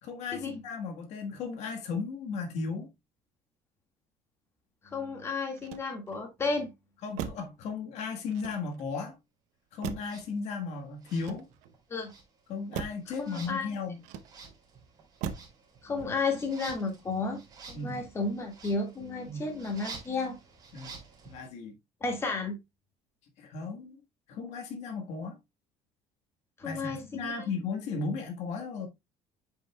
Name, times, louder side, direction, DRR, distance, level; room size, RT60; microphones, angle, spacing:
voice 1, 0.0-2.9 7.0-9.2 9.7-11.5 12.5-14.0 17.7-18.0 19.3-19.4 20.7-21.0 21.2-21.7 23.4-24.0 24.3-25.4 26.6-28.9, left 4 dB, 60° left, 1.5 m, -35 dB
voice 2, 4.8-6.7 11.9-12.1 13.1-13.7 15.8-17.4 17.7-20.4 22.0-22.5 26.6-27.3, left 3 dB, 20° left, 1.8 m, -32 dB
Motor vehicle (road), 5.5-6.3 7.1-7.6 8.3-9.0 9.8-10.3 11.1-11.8 12.7-13.1 14.0-14.6 15.2-15.6 16.0-16.4, right 8 dB, 85° right, 0.8 m, -40 dB
sound 1, 10.0-10.3 11.0-11.8 12.0-21.5, right 4 dB, 30° right, 2.7 m, -50 dB
8.3 x 5.4 x 2.2 m
cardioid pair, 165°, 13 cm